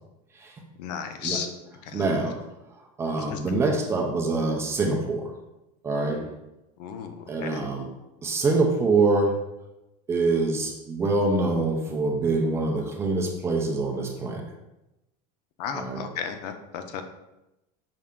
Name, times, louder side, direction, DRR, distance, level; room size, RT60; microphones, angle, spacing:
voice 1, 0.8-1.5 1.9-2.1 3.3-3.4 6.8-7.7 15.6-17.0, left 7 dB, 85° left, 7 dB, 0.6 m, -34 dB
voice 2, 1.9-2.4 2.8-5.3 5.8-6.3 7.3-7.9 8.2-9.3 10.1-14.5 15.7-16.0, right 3 dB, 15° right, 1 dB, 0.3 m, -25 dB
5.5 x 2.4 x 3.5 m, 0.94 s
cardioid pair, 175°, 20 cm